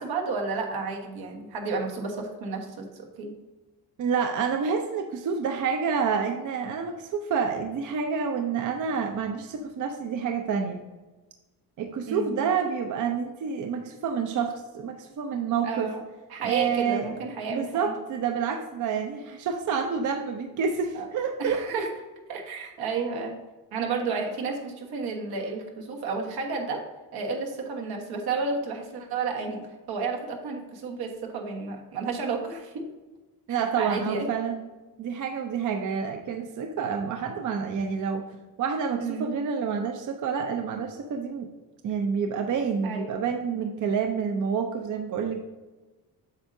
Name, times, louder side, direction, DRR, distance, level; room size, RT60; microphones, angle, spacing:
voice 1, 0.0-3.3 12.1-12.5 15.6-16.0 16.3-17.9 20.9-21.1 21.4-21.9 22.3-23.4 23.7-26.8 27.1-32.8 33.8-34.3 39.0-39.4 42.8-43.1, right 4 dB, 85° right, 1 dB, 1.4 m, -31 dB
voice 2, 4.0-10.8 11.8-15.9 16.4-17.2 17.5-21.6 33.5-34.6 35.0-38.2 38.6-41.5 41.8-45.4, right 6 dB, 55° right, 5 dB, 0.6 m, -28 dB
8.1 x 6.3 x 2.7 m, 1.2 s
cardioid pair, 130°, 37 cm